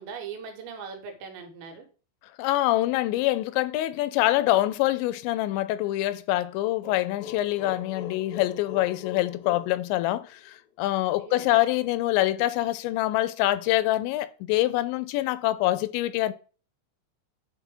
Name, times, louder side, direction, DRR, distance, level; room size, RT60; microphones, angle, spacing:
voice 1, 0.0-1.9 11.2-11.5, right 6 dB, 85° right, 3.6 m, -40 dB
voice 2, 2.4-16.3, left 16 dB, 90° left, 2.9 m, -25 dB
sound 1, 6.8-10.5, left 8 dB, 75° left, 2.6 m, -41 dB
9.4 x 4.4 x 3.5 m
omnidirectional pair, 5.1 m